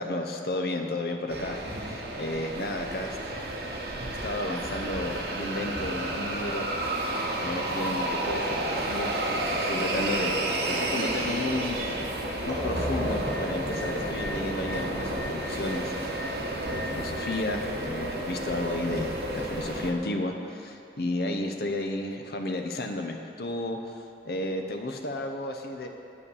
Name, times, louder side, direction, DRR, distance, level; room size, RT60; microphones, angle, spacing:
voice 1, 0.0-3.9 4.2-6.7 7.4-11.9 12.1-16.3 16.7-25.9, left 1 dB, 60° left, 4 dB, 0.7 m, -33 dB
sound 1, 1.3-19.9, right 1 dB, 60° right, 1.1 m, -31 dB
sound 2, 12.5-17.8, equal, 20° left, 2.7 m, -36 dB
8.6 x 7.1 x 6.9 m, 2.7 s
head